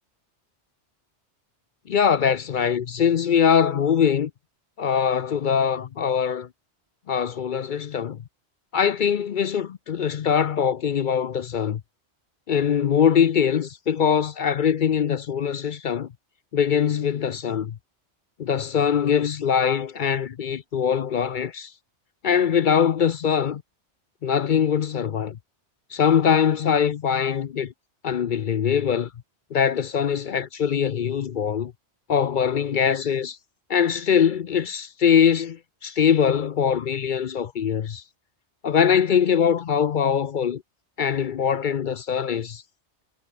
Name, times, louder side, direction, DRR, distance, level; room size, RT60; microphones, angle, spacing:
voice 1, 1.9-4.3 4.8-6.5 7.1-8.2 8.7-11.8 12.5-16.1 16.5-17.8 18.4-21.7 22.2-23.6 24.2-25.4 25.9-27.7 28.0-29.1 29.5-31.7 32.1-33.4 33.7-38.0 38.6-40.6 41.0-42.6, left 7 dB, 55° left, 0.6 m, -22 dB
omnidirectional pair, 1.2 m